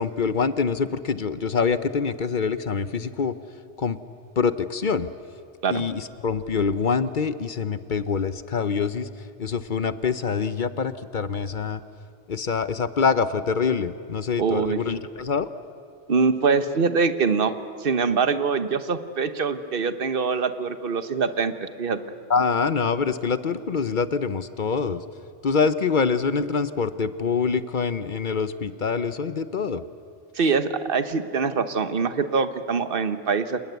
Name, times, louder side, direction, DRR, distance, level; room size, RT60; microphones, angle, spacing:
voice 1, 0.0-3.3 3.8-4.0 4.4-5.1 5.7-9.1 9.4-11.8 12.3-15.5 22.3-25.0 25.4-29.8, left 5 dB, 45° left, 13 dB, 0.8 m, -25 dB
voice 2, 14.4-14.8 16.1-17.5 17.8-22.0 30.3-33.6, right 5 dB, 50° right, 11 dB, 1.3 m, -24 dB
28.0 x 20.0 x 8.2 m, 2.5 s
omnidirectional pair, 1.2 m